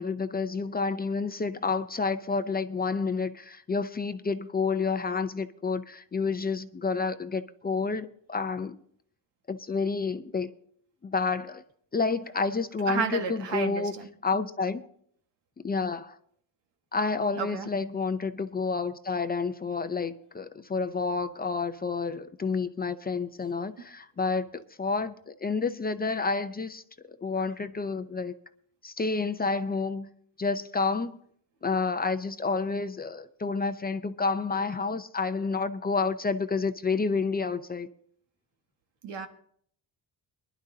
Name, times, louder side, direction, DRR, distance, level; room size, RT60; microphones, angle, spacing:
voice 1, 0.0-8.8 9.5-10.5 11.0-11.6 11.9-13.9 14.2-14.9 15.6-16.2 16.9-26.8 27.2-28.3 28.8-30.1 30.4-31.2 31.6-37.9, left 4 dB, 20° left, 0.6 m, -29 dB
voice 2, 12.9-14.1 17.4-17.7 23.8-23.9 39.0-39.3, right 6 dB, 80° right, 1.7 m, -32 dB
23.5 x 11.0 x 2.8 m
cardioid pair, 115°, 42 cm